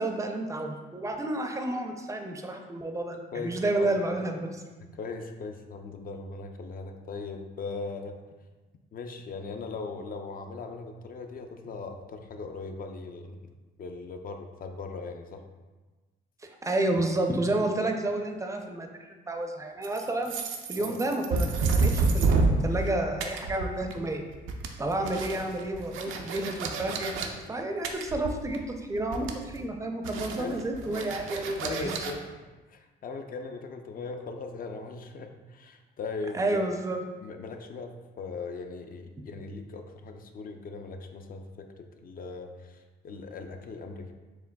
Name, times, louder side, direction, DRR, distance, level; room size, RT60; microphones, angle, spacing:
voice 1, 0.0-4.5 16.4-20.3 20.7-24.2 24.8-31.9 36.3-37.0, right 2 dB, 15° right, 4 dB, 0.4 m, -30 dB
voice 2, 3.3-4.2 4.9-8.2 8.9-13.5 13.8-15.4 20.8-21.0 25.3-25.4 30.4-31.1 31.6-32.2 32.7-36.6 37.2-41.7 42.0-44.1, left 4 dB, 45° left, 5 dB, 0.4 m, -39 dB
sound 1, 19.8-22.9 23.2-24.1 24.3-27.3 27.8-28.7 29.0-29.6 30.0-32.1, right 3 dB, 90° right, 0.4 m, -29 dB
4.8 x 3.3 x 2.2 m, 1.2 s
cardioid pair, 90°, 20 cm